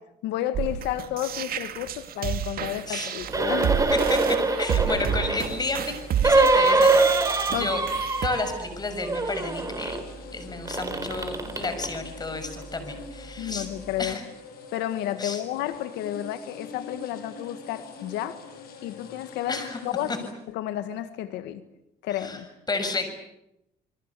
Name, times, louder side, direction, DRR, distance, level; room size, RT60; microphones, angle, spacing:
voice 1, 0.2-3.8 7.5-7.7 13.4-14.2 14.7-18.4 18.8-19.6 19.9-20.1 20.5-21.6 22.0-22.5, left 12 dB, 90° left, 11 dB, 1.7 m, -31 dB
sound 1, 0.5-8.3, right 9 dB, 60° right, 2.5 m, -30 dB
sound 2, 3.3-5.6 6.2-8.7 9.0-10.0 10.7-12.0 12.6-12.7, right 3 dB, 20° right, 4.6 m, -23 dB
voice 2, 4.6-5.9 6.2-7.0 7.6-7.8 8.2-10.0 10.3-13.7 14.0-14.2 15.2-15.4 19.5-19.8 20.1-20.2 22.2-22.4 22.7-23.1, left 3 dB, 25° left, 8 dB, 6.5 m, -31 dB
sound 3, 5.4-20.3, left 4 dB, 65° left, 7.5 m, -45 dB
28.5 x 22.0 x 8.4 m, 0.83 s
cardioid pair, 110°, 17 cm